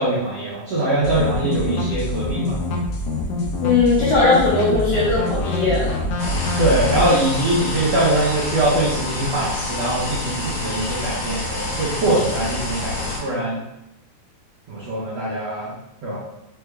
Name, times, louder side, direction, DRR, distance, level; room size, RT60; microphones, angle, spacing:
voice 1, 0.0-2.6 6.6-13.6 14.7-15.7 16.0-16.2, right 1 dB, 75° right, -8 dB, 1.5 m, -22 dB
sound 1, 1.0-7.2, left 2 dB, 90° left, 1.6 m, -25 dB
voice 2, 3.6-5.9, left 3 dB, 75° left, -6 dB, 1.8 m, -18 dB
sound 2, 6.2-13.2, left 2 dB, 55° left, 2.5 m, -27 dB
5.6 x 3.2 x 2.3 m, 0.86 s
omnidirectional pair, 4.3 m